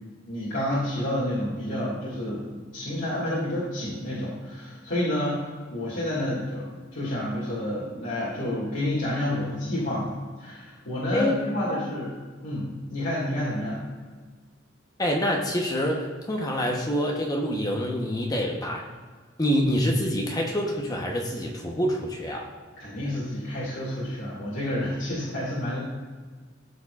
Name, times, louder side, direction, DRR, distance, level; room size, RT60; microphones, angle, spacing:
voice 1, 0.3-10.1 10.4-12.1 12.4-13.8 22.8-25.8, left 1 dB, 75° left, -8 dB, 2.0 m, -29 dB
voice 2, 11.1-11.4 11.7-11.9 15.0-18.8 19.4-22.5, equal, 20° left, 0 dB, 0.8 m, -26 dB
13.5 x 4.7 x 2.4 m, 1.5 s
head